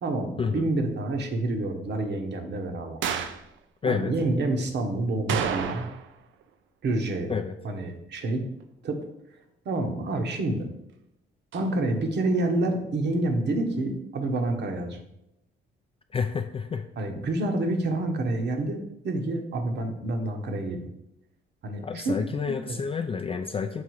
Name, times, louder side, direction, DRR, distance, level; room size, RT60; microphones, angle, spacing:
voice 1, 0.0-3.0 3.8-5.9 6.8-7.3 7.6-8.4 8.8-9.4 9.6-10.7 11.5-15.0 17.0-20.9 21.6-22.2 22.7-22.8, right 2 dB, 60° right, 5 dB, 1.1 m, -28 dB
sound 1, 3.0-3.5 5.3-6.2 6.4-6.5 11.5-11.7, right 7 dB, 75° right, 0.5 m, -29 dB
voice 2, 16.1-16.8 21.8-23.8, left 5 dB, 30° left, 6 dB, 0.4 m, -29 dB
6.8 x 3.7 x 4.7 m, 0.83 s
cardioid pair, 90°, 20 cm